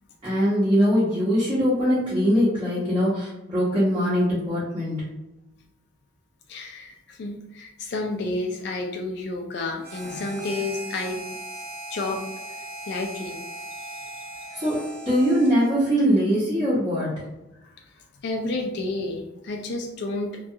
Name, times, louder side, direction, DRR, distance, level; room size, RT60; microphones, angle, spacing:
voice 1, 0.2-5.0 14.6-14.8 15.0-17.1, equal, 25° right, -12 dB, 0.9 m, -22 dB
voice 2, 6.5-11.2 11.9-12.2 12.6-13.4 13.7-14.6 17.6-20.4, left 2 dB, 65° left, 2 dB, 0.4 m, -31 dB
Harmonica, 9.8-15.8, right 1 dB, 55° right, 0.8 m, -38 dB
2.3 x 2.3 x 2.7 m, 0.92 s
head